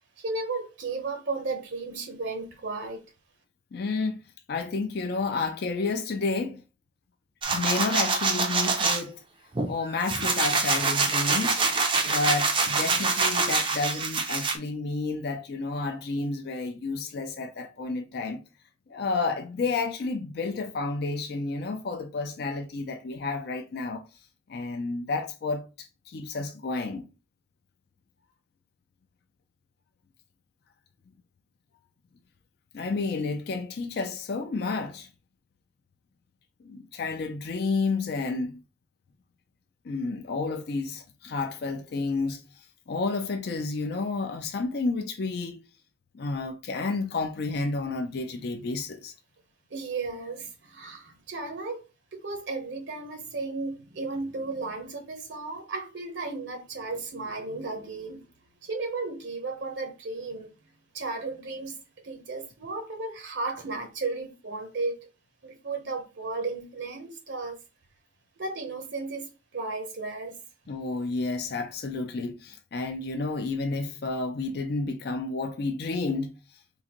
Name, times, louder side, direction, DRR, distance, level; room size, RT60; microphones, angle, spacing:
voice 1, 0.2-3.0 49.7-51.8 52.1-58.3 58.6-60.5 60.9-61.8 62.0-64.9 65.4-67.6 68.4-70.4, right 3 dB, 65° right, 0.8 m, -34 dB
voice 2, 3.7-4.2 4.5-6.6 7.5-9.2 9.7-11.6 12.0-18.4 18.9-24.0 24.5-27.1 32.7-35.1 36.6-38.6 39.8-42.4 42.9-45.6 46.1-49.1 70.7-76.3, left 3 dB, 55° left, 0.4 m, -30 dB
sound 1, 7.4-9.0 9.5-14.6, right 4 dB, 25° right, 0.4 m, -25 dB
3.7 x 2.5 x 2.9 m
head